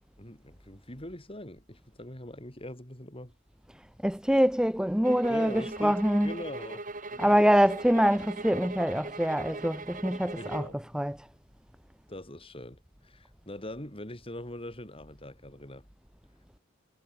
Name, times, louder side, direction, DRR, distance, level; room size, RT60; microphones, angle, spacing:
voice 1, 0.2-3.4 5.3-7.8 10.4-10.8 12.1-15.9, left 1 dB, 30° left, 7.7 m, -42 dB
voice 2, 4.0-6.3 7.2-10.6 10.9-11.2, equal, 5° right, 1.2 m, -25 dB
sound 1, 5.0-10.8, right 2 dB, 40° right, 5.9 m, -40 dB
head